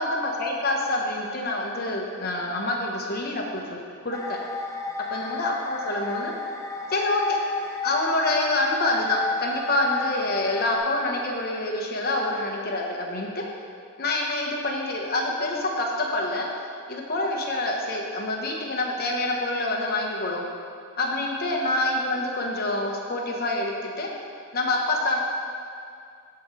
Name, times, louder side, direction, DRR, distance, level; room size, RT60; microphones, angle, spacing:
voice 1, 0.0-4.4 5.1-6.3 6.9-7.4 7.8-13.4 14.0-16.5 16.9-20.5 21.0-24.1 24.5-25.2, left 2 dB, 45° left, -1 dB, 1.0 m, -26 dB
sound 1, 4.1-10.8, left 4 dB, 15° left, 0.4 m, -33 dB
14.5 x 4.8 x 3.2 m, 2.3 s
head